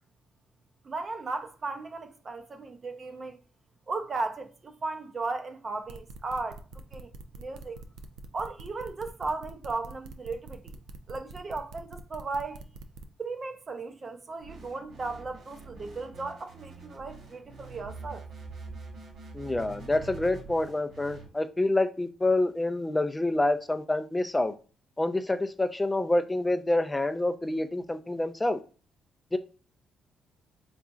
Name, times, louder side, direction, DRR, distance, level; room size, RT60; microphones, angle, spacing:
voice 1, 0.8-3.4 3.9-7.1 7.4-7.8 8.3-10.8 11.1-12.6 13.2-18.2, right 3 dB, 35° right, 0.6 m, -36 dB
sound 1, 5.9-13.0, right 3 dB, 85° right, 0.4 m, -45 dB
sound 2, 14.4-21.3, right 4 dB, 65° right, 1.6 m, -45 dB
voice 2, 19.3-24.5 25.0-28.6 29.3-29.4, left 2 dB, 15° left, 0.3 m, -27 dB
3.9 x 3.6 x 2.4 m
cardioid pair, 90°, 0 cm